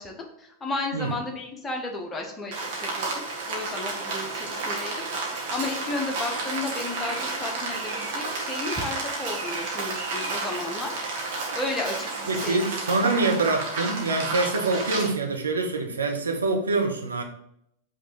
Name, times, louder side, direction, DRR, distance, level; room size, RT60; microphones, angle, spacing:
voice 1, 0.0-3.2 3.5-12.6 13.0-13.1, left 3 dB, 15° left, 2 dB, 1.1 m, -34 dB
Rain, 2.5-15.1, right 3 dB, 50° right, 1.6 m, -31 dB
voice 2, 12.3-17.2, right 3 dB, 75° right, 2 dB, 0.9 m, -25 dB
5.7 x 3.4 x 5.2 m, 0.75 s
figure-of-eight pair, 90°, 0 cm